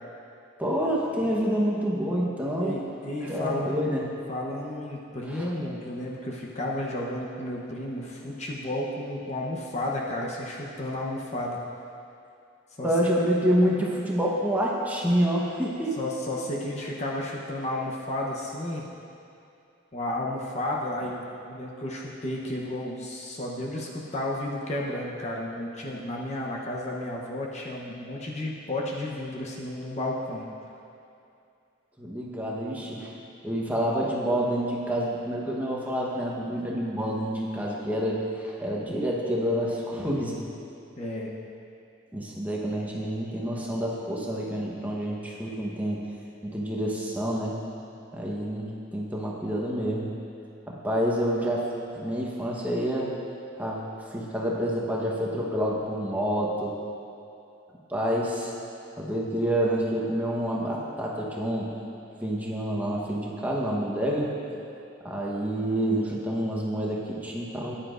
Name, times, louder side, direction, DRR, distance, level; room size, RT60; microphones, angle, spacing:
voice 1, 0.6-2.8 3.2-4.1 5.3-5.5 12.8-15.9 32.0-33.1 33.4-40.4 42.1-46.1 46.4-47.6 48.1-50.1 50.7-51.7 51.9-53.1 53.6-53.8 54.1-56.8 57.9-58.5 59.0-61.7 62.2-64.3 65.0-67.7, equal, 10° right, -4 dB, 1.0 m, -28 dB
voice 2, 2.6-3.8 4.3-11.6 12.8-12.9 16.0-18.9 19.9-30.5 41.0-41.3, left 1 dB, 35° left, -2 dB, 0.8 m, -32 dB
14.0 x 10.0 x 2.5 m, 2.6 s
head